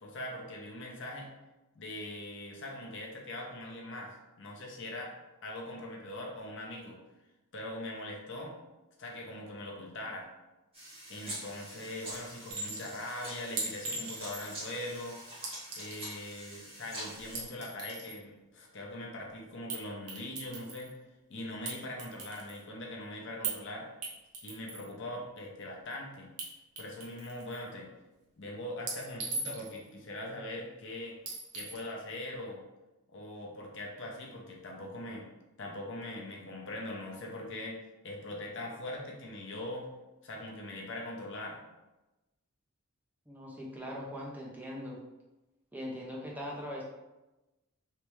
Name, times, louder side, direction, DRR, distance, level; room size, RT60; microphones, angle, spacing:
voice 1, 0.0-1.3 1.7-5.1 5.4-7.0 7.5-8.5 9.0-10.3 11.1-15.2 15.8-20.9 21.3-23.9 24.4-26.3 26.8-27.9 28.4-31.2 31.5-32.6 33.1-35.3 35.6-37.8 38.0-39.9 40.2-41.6, left 1 dB, 55° left, -1 dB, 0.7 m, -41 dB
sound 1, 10.7-17.4, right 1 dB, 25° right, 1.4 m, -45 dB
Chink clink, 12.5-12.9 13.6-14.7 15.4-16.2 17.2-18.2 19.7-19.8 20.1-20.9 21.7-22.6 23.4-23.6 24.0-24.9 26.4-26.5 26.8-27.6 28.9-29.9 31.3-31.8, right 3 dB, 85° right, 0.9 m, -39 dB
voice 2, 43.3-45.0 45.7-46.8, equal, 10° right, -4 dB, 0.5 m, -40 dB
3.3 x 3.1 x 3.1 m, 1.0 s
head